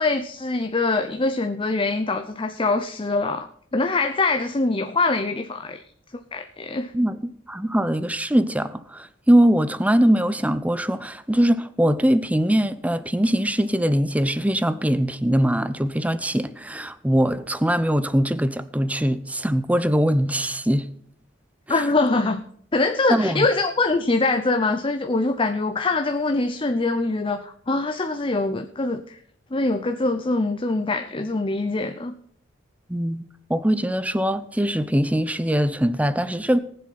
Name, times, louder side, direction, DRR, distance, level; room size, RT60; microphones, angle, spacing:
voice 1, 0.0-5.8 6.3-6.9 21.7-22.4 22.7-29.2 29.5-32.1, left 3 dB, 25° left, 0.7 m, -23 dB
voice 2, 7.5-20.9 21.7-21.8 23.1-23.5 32.9-33.2 33.5-36.6, equal, 10° right, 0.7 m, -21 dB
19.0 x 7.6 x 4.2 m
head